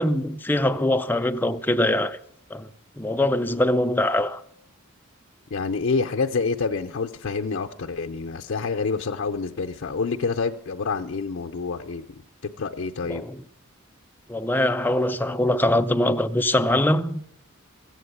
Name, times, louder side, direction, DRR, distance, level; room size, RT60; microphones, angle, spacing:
voice 1, 0.0-2.2 2.5-2.7 3.0-4.4 13.1-13.4 14.3-17.2, left 1 dB, 10° left, 0.4 m, -22 dB
voice 2, 5.5-12.2 12.6-13.2, left 4 dB, 60° left, 0.6 m, -27 dB
15.0 x 7.8 x 8.1 m
head